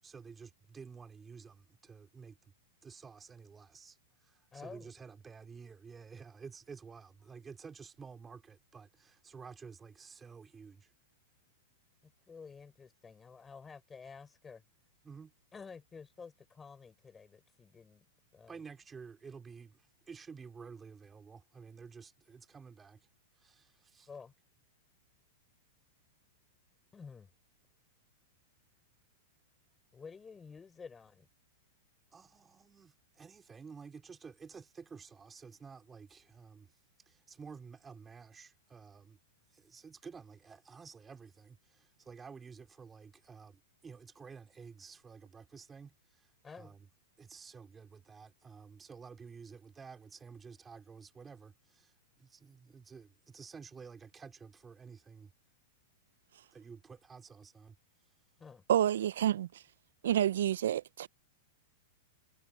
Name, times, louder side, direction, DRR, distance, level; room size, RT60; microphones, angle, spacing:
voice 1, 0.0-2.5 2.8-10.9 15.0-15.3 18.5-23.0 23.4-24.1 32.1-36.7 37.1-39.2 39.5-46.9 47.2-55.3 56.5-57.8, right 5 dB, 15° right, 3.9 m, -52 dB
voice 2, 4.5-4.9 12.0-14.6 15.5-18.0 18.3-18.6 24.1-24.3 26.9-27.3 29.9-31.3 46.4-46.8 58.4-58.6, left 5 dB, 15° left, 6.2 m, -51 dB
voice 3, 58.7-59.6 60.0-61.1, right 11 dB, 80° right, 0.4 m, -29 dB
hypercardioid pair, 140°, 0 cm